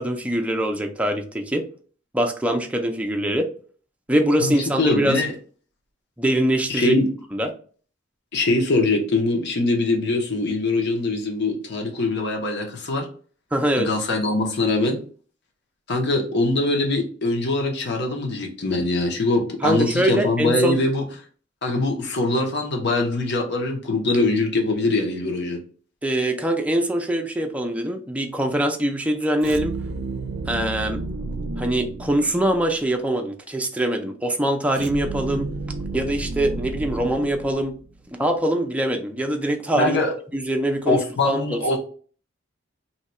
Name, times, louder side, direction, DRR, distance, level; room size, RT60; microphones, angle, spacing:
voice 1, 0.0-1.6 2.1-3.5 4.1-5.3 6.2-7.0 7.3-7.5 13.5-13.9 19.6-20.8 26.0-29.8 30.5-31.0 31.6-35.5 35.9-37.7 38.2-40.0 40.3-41.8, right 1 dB, 5° right, 3 dB, 0.5 m, -23 dB
voice 2, 4.4-5.3 6.7-7.1 8.3-13.1 13.8-15.0 15.9-21.0 21.6-25.6 39.8-40.1 40.9-41.8, left 2 dB, 60° left, 2 dB, 0.9 m, -22 dB
sound 1, 29.4-32.7 34.7-38.0, right 3 dB, 65° right, 0.4 m, -31 dB
2.8 x 2.3 x 4.1 m, 0.42 s
head